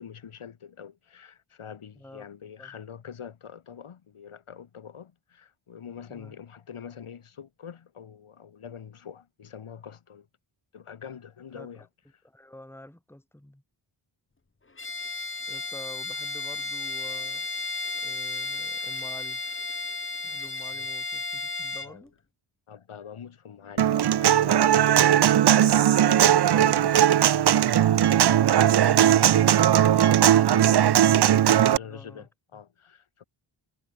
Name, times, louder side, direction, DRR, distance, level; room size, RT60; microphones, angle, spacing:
voice 1, 0.0-10.3 10.7-11.9 20.7-20.9 21.8-22.0 22.7-33.2, left 7 dB, 80° left, 8.0 m, -45 dB
voice 2, 1.9-2.3 2.6-2.8 6.1-6.3 11.5-11.9 12.2-13.6 15.5-17.5 18.0-19.4 20.2-22.1 31.3-32.3, left 1 dB, 5° left, 3.4 m, -48 dB
Bowed string instrument, 14.8-21.9, left 3 dB, 25° left, 2.7 m, -33 dB
Human voice / Acoustic guitar, 23.8-31.8, right 10 dB, 55° right, 0.7 m, -19 dB
wide cardioid pair, 135°, 49 cm